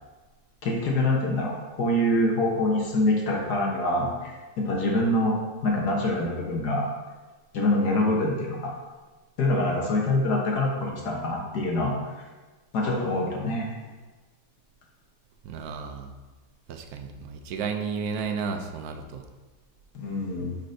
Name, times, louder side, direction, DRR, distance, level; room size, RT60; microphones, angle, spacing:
voice 1, 0.6-5.4 5.6-6.9 7.5-8.7 9.4-12.2 12.7-13.7 19.9-20.6, left 1 dB, 70° left, -1 dB, 1.5 m, -25 dB
voice 2, 15.4-16.1 16.7-19.2, right 5 dB, 70° right, 5 dB, 1.0 m, -33 dB
9.7 x 4.2 x 2.6 m, 1.3 s
omnidirectional pair, 1.8 m